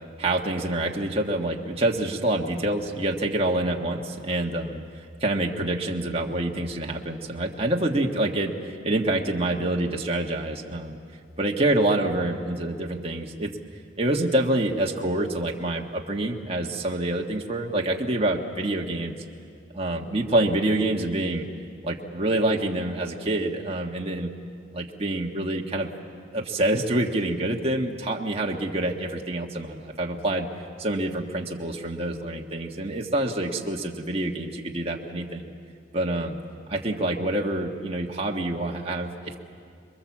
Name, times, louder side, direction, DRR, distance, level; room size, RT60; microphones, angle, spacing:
voice 1, 0.2-4.8 5.2-11.0 11.4-13.5 14.0-19.2 19.7-21.4 21.8-24.3 24.7-25.9 26.3-30.5 30.8-35.5 35.9-36.4 36.7-39.4, right 1 dB, 30° right, 0 dB, 1.6 m, -26 dB
27.5 x 22.5 x 7.4 m, 2.4 s
head